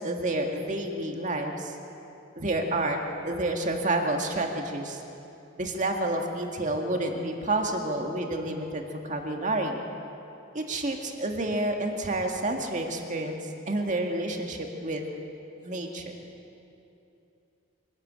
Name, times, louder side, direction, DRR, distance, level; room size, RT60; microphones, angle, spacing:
voice 1, 0.0-1.8 2.4-5.0 5.6-9.8 10.5-13.4 13.7-15.1 15.6-16.1, right 2 dB, 40° right, 2 dB, 2.1 m, -29 dB
24.0 x 13.5 x 8.9 m, 2.8 s
head